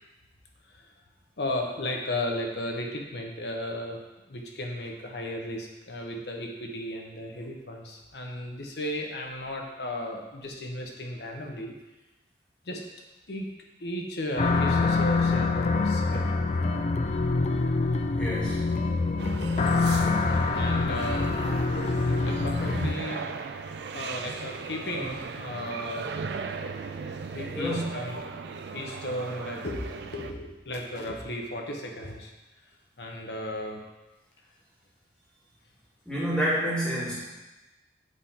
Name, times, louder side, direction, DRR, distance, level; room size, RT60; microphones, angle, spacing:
voice 1, 1.4-4.0 4.3-11.8 12.6-12.8 13.3-13.5 13.8-16.2 16.6-16.8 20.5-21.3 22.3-23.3 23.9-26.1 27.3-28.3 28.7-32.3 33.0-33.8, left 1 dB, 65° left, 1 dB, 1.0 m, -35 dB
sound 1, 14.4-22.9, left 3 dB, 40° left, 0.3 m, -25 dB
voice 2, 18.2-18.7 27.5-28.1 36.1-37.2, equal, 5° left, -8 dB, 1.8 m, -29 dB
sound 2, 19.2-30.3, right 5 dB, 70° right, 0.4 m, -37 dB
8.2 x 3.7 x 4.2 m, 1.1 s
head